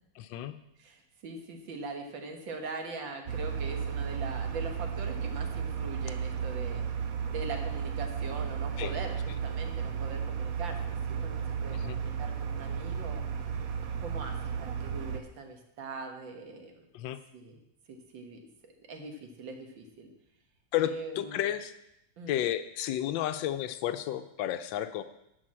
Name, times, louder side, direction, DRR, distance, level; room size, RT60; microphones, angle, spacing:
voice 1, 0.2-0.6 8.8-8.9 11.7-12.0 16.9-17.2 20.7-20.9 21.2-21.7 22.3-25.0, left 12 dB, 80° left, 11 dB, 1.4 m, -32 dB
voice 2, 0.8-6.8 7.3-13.2 14.0-16.9 17.3-17.6 17.9-18.5 18.8-20.1 20.8-21.4 22.2-22.4, right 3 dB, 85° right, 3 dB, 2.2 m, -42 dB
sound 1, 3.3-15.2, right 7 dB, 60° right, 1.0 m, -34 dB
11.5 x 5.0 x 7.4 m, 0.83 s
omnidirectional pair, 2.0 m